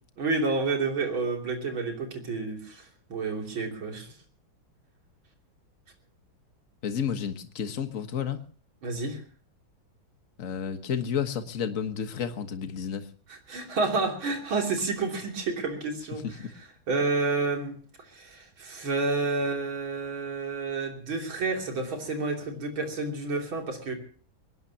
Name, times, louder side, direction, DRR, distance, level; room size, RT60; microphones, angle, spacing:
voice 1, 0.2-2.8 3.1-4.1 8.8-9.2 13.3-16.2 16.9-17.7 18.1-23.9, right 3 dB, 80° right, 2 dB, 3.9 m, -29 dB
voice 2, 6.8-8.4 10.4-13.1 16.2-16.5, left 7 dB, 45° left, 8 dB, 1.7 m, -31 dB
22.5 x 19.0 x 2.9 m, 0.43 s
omnidirectional pair, 2.2 m